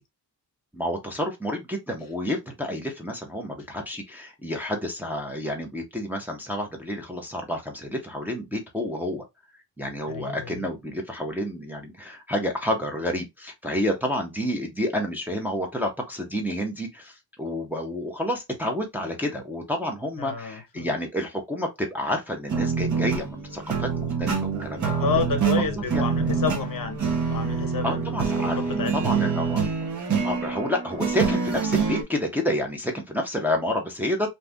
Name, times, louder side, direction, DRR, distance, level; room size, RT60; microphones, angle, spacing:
voice 1, 0.7-9.2 9.8-25.2 25.9-26.0 27.8-29.7 30.2-34.3, left 1 dB, 5° right, 0.6 m, -29 dB
voice 2, 10.1-10.7 20.2-20.9 25.0-28.0 28.4-29.2, left 6 dB, 50° left, 0.7 m, -30 dB
sound 1, 22.5-32.0, right 6 dB, 45° right, 0.8 m, -26 dB
2.6 x 2.4 x 3.3 m
wide cardioid pair, 160°, 42 cm